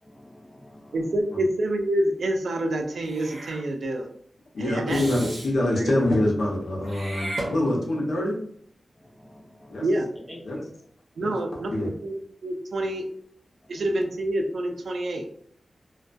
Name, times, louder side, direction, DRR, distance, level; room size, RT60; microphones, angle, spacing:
voice 1, 0.0-1.1 9.0-9.9 10.3-10.6 11.2-11.3 13.7-13.8, left 1 dB, 10° left, -3 dB, 0.7 m, -48 dB
voice 2, 0.9-4.1 4.6-5.0 9.8-10.1 11.2-13.1 13.7-15.2, right 1 dB, 80° right, 4 dB, 0.4 m, -27 dB
Meow / Hiss, 3.0-3.6 4.9-5.5 6.8-8.1, right 1 dB, 55° right, 0.7 m, -35 dB
voice 3, 4.5-8.4 9.7-9.9 10.4-10.6 11.2-11.3 11.7-11.9, left 1 dB, 75° left, -2 dB, 0.7 m, -25 dB
2.2 x 2.2 x 2.5 m, 0.64 s
wide cardioid pair, 120°, 0 cm